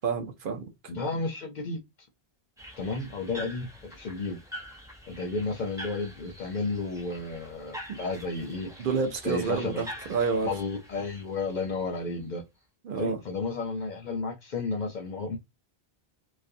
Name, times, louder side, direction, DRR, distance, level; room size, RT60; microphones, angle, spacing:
voice 1, 0.0-0.7 7.9-8.0 8.8-10.5 12.8-13.2, right 5 dB, 60° right, 0.7 m, -29 dB
voice 2, 0.9-1.8 2.8-4.4 5.1-8.9 9.2-9.8 10.4-12.4 12.9-15.4, left 3 dB, 55° left, 0.6 m, -32 dB
sound 1, 2.6-12.3, equal, 5° right, 0.3 m, -45 dB
2.4 x 2.1 x 2.5 m
omnidirectional pair, 1.1 m